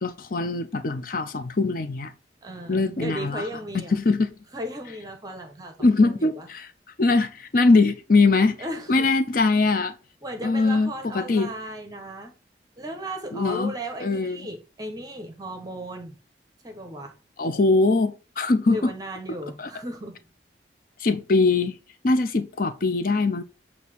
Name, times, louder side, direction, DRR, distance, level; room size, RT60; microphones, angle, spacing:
voice 1, 0.0-2.1 2.7-3.4 3.7-4.3 5.8-6.7 7.0-8.6 8.9-9.9 10.4-11.5 13.3-13.7 14.0-14.4 17.4-18.9 19.6-19.7 21.0-21.8 22.0-23.4, left 3 dB, 50° left, 0.6 m, -22 dB
voice 2, 2.4-4.0 4.5-6.5 8.6-9.1 10.2-12.3 12.8-16.2 16.6-17.2 18.7-20.2, right 1 dB, 20° right, 1.1 m, -36 dB
8.3 x 2.8 x 6.0 m
head